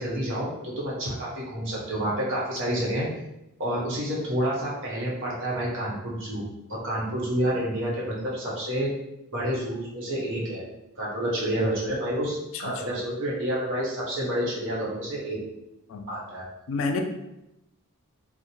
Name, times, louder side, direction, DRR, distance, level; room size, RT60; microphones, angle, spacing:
voice 1, 0.0-3.1 3.6-6.4 6.7-8.9 9.3-10.6 11.0-15.4 16.1-16.5, right 1 dB, 60° right, -5 dB, 0.9 m, -29 dB
voice 2, 16.7-17.0, left 3 dB, 60° left, 4 dB, 0.4 m, -29 dB
2.5 x 2.1 x 2.9 m, 0.88 s
head